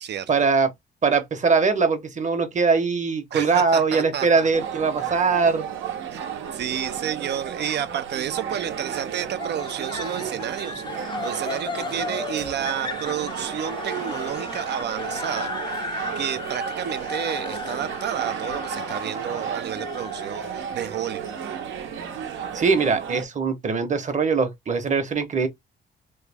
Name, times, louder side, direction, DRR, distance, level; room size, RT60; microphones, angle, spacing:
voice 1, 0.3-0.7 1.0-5.7 22.5-25.5, right 5 dB, 40° right, 1.0 m, -21 dB
voice 2, 3.3-4.5 6.1-15.9 16.2-21.3, right 9 dB, 60° right, 0.6 m, -31 dB
sound 1, 4.5-23.3, right 8 dB, 75° right, 0.9 m, -33 dB
sound 2, 9.4-22.5, left 4 dB, 25° left, 0.6 m, -36 dB
3.2 x 2.3 x 3.4 m
cardioid pair, 90°, 20 cm